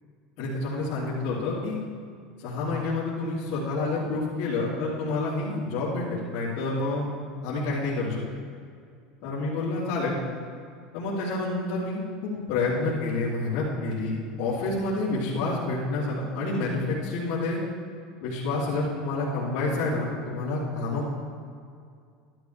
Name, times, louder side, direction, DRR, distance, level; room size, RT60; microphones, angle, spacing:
voice 1, 0.4-1.8 2.4-7.1 7.4-8.2 9.2-10.2 10.9-17.6 18.2-21.0, left 3 dB, 60° left, -11 dB, 3.3 m, -28 dB
13.0 x 12.5 x 3.4 m, 2.2 s
supercardioid pair, 155°, 0 cm